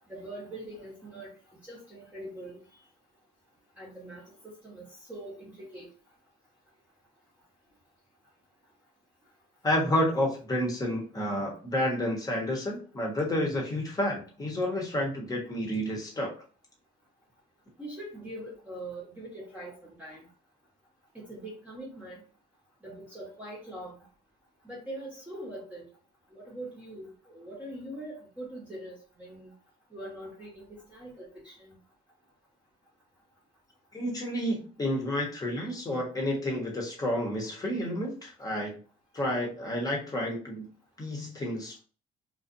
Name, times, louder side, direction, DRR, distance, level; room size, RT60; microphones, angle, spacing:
voice 1, 0.1-1.3 1.6-2.6 3.8-4.8 5.1-5.9 17.8-20.2 21.1-22.2 22.8-24.0 24.6-25.9 26.3-29.5 29.9-31.7, right 1 dB, 10° right, -6 dB, 1.0 m, -42 dB
voice 2, 9.6-16.3 33.9-38.8 39.1-40.7 41.0-41.8, left 1 dB, 20° left, -1 dB, 1.1 m, -30 dB
2.5 x 2.3 x 2.6 m, 0.39 s
cardioid pair, 110°, 17 cm